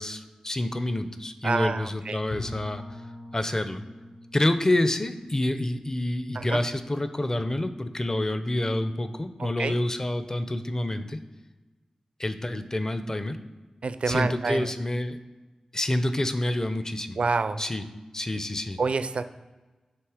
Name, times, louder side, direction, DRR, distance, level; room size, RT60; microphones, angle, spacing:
voice 1, 0.0-3.0 3.3-3.8 4.3-11.2 12.2-13.4 14.1-15.2 15.7-17.2 17.6-17.8 18.1-18.8, left 1 dB, 25° left, 10 dB, 0.6 m, -28 dB
voice 2, 1.4-2.2 6.4-6.6 9.4-9.8 13.8-14.7 17.2-17.6 18.8-19.2, right 4 dB, 65° right, 11 dB, 0.4 m, -27 dB
Bowed string instrument, 2.3-7.1, left 1 dB, 70° left, 1.0 m, -44 dB
7.6 x 3.3 x 4.9 m, 1.2 s
cardioid pair, 40°, 2 cm